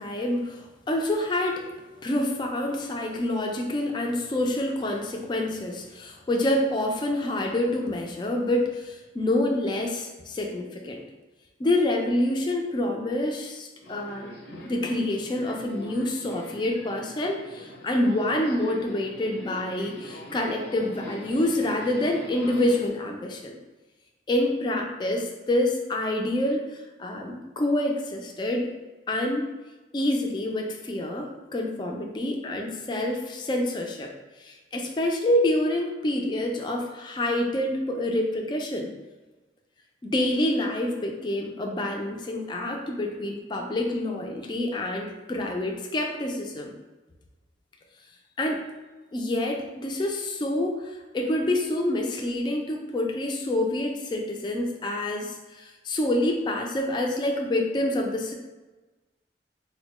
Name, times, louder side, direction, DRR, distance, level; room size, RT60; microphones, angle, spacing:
voice 1, 0.0-1.7 2.0-11.0 11.6-14.4 14.7-23.6 24.3-28.7 29.1-29.5 29.9-34.1 34.4-38.9 40.0-46.7 48.4-48.6 49.1-58.3, left 1 dB, 25° left, 1 dB, 0.3 m, -27 dB
Subway metro underground, 13.8-22.9, left 1 dB, 85° left, 0.7 m, -43 dB
4.1 x 2.1 x 3.0 m, 1.2 s
head